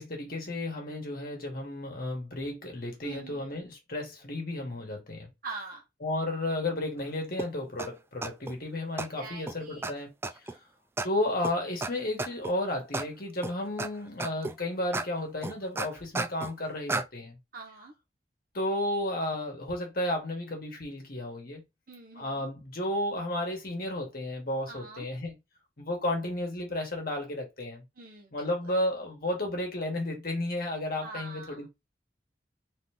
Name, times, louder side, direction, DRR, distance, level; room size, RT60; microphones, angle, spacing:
voice 1, 0.0-5.3 6.0-10.1 11.0-17.4 18.5-21.6 22.1-25.4 25.8-27.8 28.3-31.7, left 1 dB, 55° left, 1.7 m, -33 dB
voice 2, 3.0-3.6 5.4-5.8 9.2-10.0 17.5-17.9 21.9-22.5 24.7-25.1 27.9-28.7 31.0-31.6, right 3 dB, 55° right, 1.6 m, -44 dB
sound 1, 7.4-7.5 7.8-7.9 8.2-8.5 9.0-9.1 9.5-9.6 9.8-9.9 10.2-10.5 11.0-11.1 11.4-11.5 11.8-11.9 12.2-12.5 12.9-13.1 13.4-13.9 14.2-14.5 14.9-15.1 15.4-16.5 16.9-17.0, right 2 dB, 15° right, 0.3 m, -32 dB
3.9 x 3.1 x 3.5 m
head